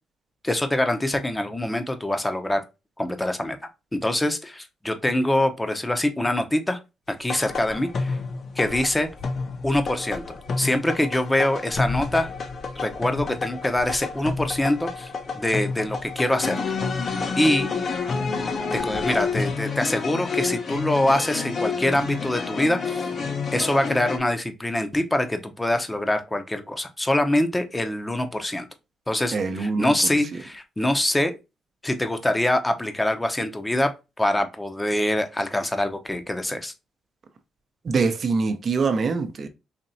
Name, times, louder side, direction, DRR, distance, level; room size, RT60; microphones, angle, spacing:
voice 1, 0.4-2.6 3.0-3.6 3.9-6.8 7.1-8.2 8.6-9.1 9.6-10.2 10.6-12.3 12.8-16.8 17.4-17.7 18.7-23.1 23.5-28.7 29.1-31.3 31.8-33.9 34.2-36.7, left 1 dB, 10° left, 0.7 m, -24 dB
sound 1, 7.3-24.2, left 4 dB, 50° left, 0.7 m, -29 dB
voice 2, 29.3-29.9 37.8-39.5, right 4 dB, 45° right, 0.7 m, -24 dB
4.2 x 2.9 x 2.6 m
cardioid pair, 90°, 0 cm